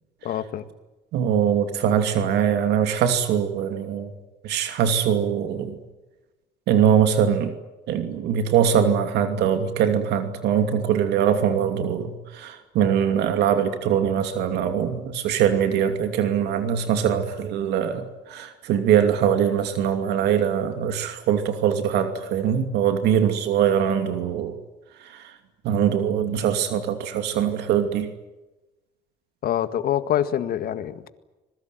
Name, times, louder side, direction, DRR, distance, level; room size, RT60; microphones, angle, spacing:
voice 1, 0.2-0.7 29.4-31.1, left 10 dB, 60° left, 11 dB, 1.9 m, -25 dB
voice 2, 1.1-4.1 4.4-5.8 6.7-7.5 7.9-24.6 25.0-25.3 25.6-28.1, right 8 dB, 80° right, 7 dB, 2.7 m, -22 dB
26.0 x 21.5 x 9.2 m, 1.1 s
cardioid pair, 110°, 17 cm